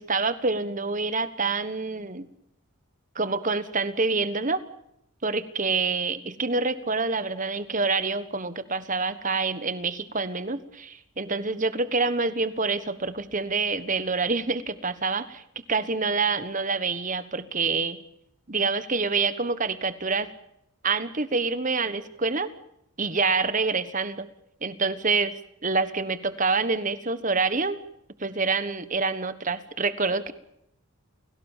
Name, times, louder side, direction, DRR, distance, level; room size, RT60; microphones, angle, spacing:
voice 1, 0.0-2.3 3.1-4.6 5.2-15.4 15.7-18.0 18.5-20.3 20.8-22.5 23.0-24.3 24.6-25.3 25.6-27.8 28.2-30.3, right 4 dB, 35° right, 13 dB, 1.4 m, -27 dB
29.5 x 17.5 x 7.4 m, 0.80 s
head